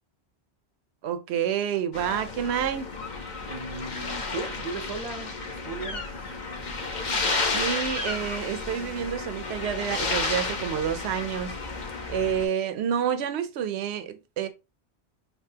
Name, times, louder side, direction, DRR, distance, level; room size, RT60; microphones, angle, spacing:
voice 1, 1.0-2.9 7.5-11.6 12.1-14.5, right 8 dB, 80° right, 0.9 m, -28 dB
sound 1, 1.9-12.4, left 3 dB, 45° left, 0.9 m, -32 dB
voice 2, 3.5-6.3, right 3 dB, 40° right, 0.7 m, -37 dB
6.0 x 2.8 x 2.8 m
omnidirectional pair, 1.1 m